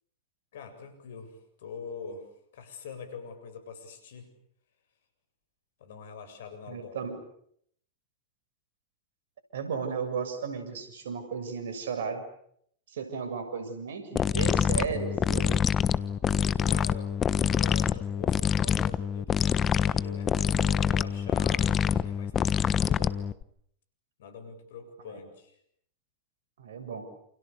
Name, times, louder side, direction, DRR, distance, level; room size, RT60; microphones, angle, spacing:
voice 1, 0.5-4.3 5.8-7.1 16.6-23.2 24.2-25.6, left 5 dB, 65° left, 9 dB, 7.6 m, -44 dB
voice 2, 6.7-7.2 9.5-12.2 12.9-15.6 26.6-27.0, right 6 dB, 70° right, 9 dB, 6.8 m, -34 dB
sound 1, 14.2-23.4, left 8 dB, 25° left, 1.2 m, -26 dB
29.5 x 28.5 x 6.9 m, 0.69 s
hypercardioid pair, 95°, 0 cm